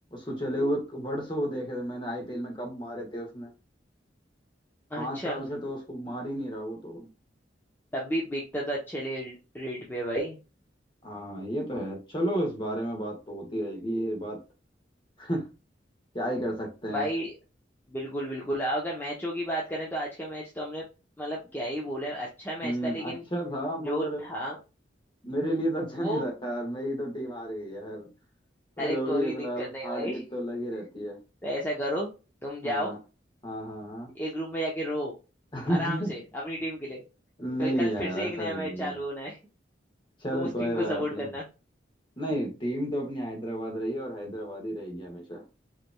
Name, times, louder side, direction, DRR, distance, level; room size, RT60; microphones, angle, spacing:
voice 1, 0.1-3.5 4.9-7.1 11.0-14.4 15.2-15.5 16.1-17.1 22.6-24.2 25.2-28.1 28.8-31.2 32.6-33.0 33.4-34.1 35.5-36.1 37.4-38.9 40.2-41.2 42.2-45.4, equal, 25° left, 0 dB, 1.5 m, -32 dB
voice 2, 4.9-5.4 7.9-10.4 16.9-17.4 17.9-20.8 21.2-23.2 23.8-24.6 26.0-26.2 28.8-30.2 31.4-32.1 32.4-32.9 34.1-35.1 35.7-37.0 37.6-39.4 40.3-41.4, equal, 10° left, -4 dB, 0.8 m, -32 dB
4.9 x 3.1 x 2.2 m, 0.30 s
head